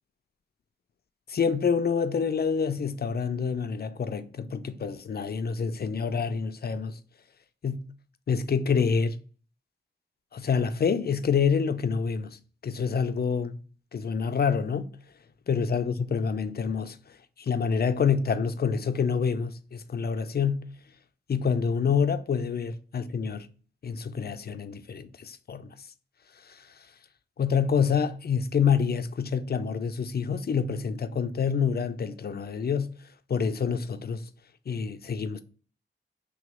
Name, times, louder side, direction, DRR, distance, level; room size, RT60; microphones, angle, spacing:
voice 1, 1.3-7.0 7.6-7.9 8.3-9.2 10.3-12.4 12.6-13.6 13.9-15.0 15.5-17.0 17.4-20.7 21.3-23.5 23.8-25.7 26.5-26.7 27.4-32.9 33.3-34.2 34.7-35.4, left 6 dB, 55° left, 0.5 m, -27 dB
3.4 x 3.0 x 4.8 m
wide cardioid pair, 110°, 20 cm